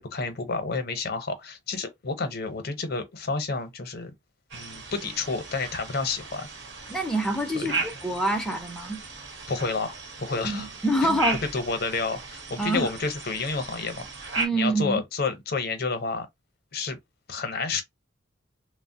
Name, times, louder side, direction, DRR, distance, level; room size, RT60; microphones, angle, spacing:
voice 1, 0.0-4.1 4.5-6.5 7.5-7.9 9.5-10.7 11.0-11.2 11.5-16.3 16.7-17.0 17.3-17.8, left 4 dB, 55° left, 0.7 m, -30 dB
sound 1, 4.5-14.5, right 3 dB, 65° right, 1.0 m, -36 dB
voice 2, 6.9-7.7 8.0-9.0 10.4-11.4 12.6-12.9 14.4-15.0, right 1 dB, 5° left, 0.5 m, -26 dB
3.2 x 2.0 x 2.6 m
head